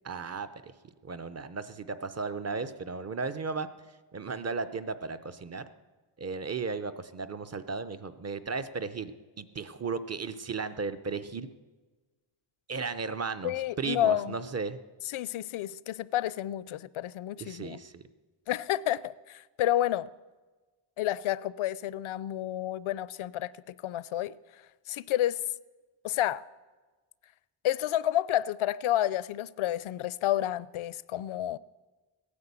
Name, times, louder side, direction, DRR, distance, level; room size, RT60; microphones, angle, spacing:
voice 1, 0.0-0.7 1.0-3.7 4.1-5.6 6.2-11.5 12.7-14.8 17.4-18.0, right 4 dB, 30° right, 0.6 m, -35 dB
voice 2, 13.4-14.4 15.1-17.8 18.5-20.1 21.0-24.6 24.9-25.4 26.0-26.4 27.6-31.6, left 12 dB, 75° left, 0.6 m, -30 dB
17.0 x 9.7 x 8.2 m
wide cardioid pair, 165°, 49 cm